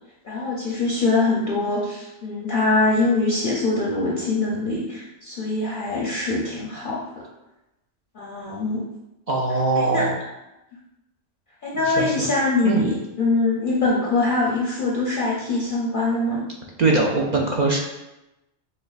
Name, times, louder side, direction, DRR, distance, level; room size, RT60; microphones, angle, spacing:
voice 1, 0.2-7.2 8.1-8.8 9.7-10.1 11.6-16.5, left 2 dB, 55° left, -5 dB, 0.7 m, -23 dB
voice 2, 9.3-10.1 11.9-12.3 12.6-12.9 16.8-17.8, right 3 dB, 55° right, -1 dB, 0.5 m, -21 dB
6.4 x 2.2 x 2.4 m, 0.96 s
omnidirectional pair, 1.2 m